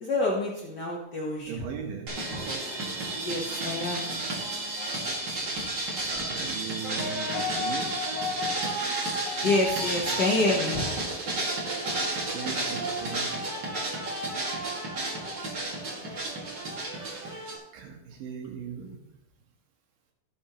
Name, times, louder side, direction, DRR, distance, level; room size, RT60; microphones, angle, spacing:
voice 1, 0.0-1.7 3.2-4.1 9.4-11.0, left 2 dB, 65° left, -3 dB, 1.0 m, -27 dB
voice 2, 1.5-2.1 6.1-7.9 12.1-13.4 15.9-16.1 16.9-17.4 17.7-19.0, right 7 dB, 85° right, 1 dB, 2.9 m, -39 dB
sound 1, 2.1-17.6, right 1 dB, 35° right, 2.3 m, -31 dB
17.0 x 6.4 x 3.0 m, 0.87 s
omnidirectional pair, 3.9 m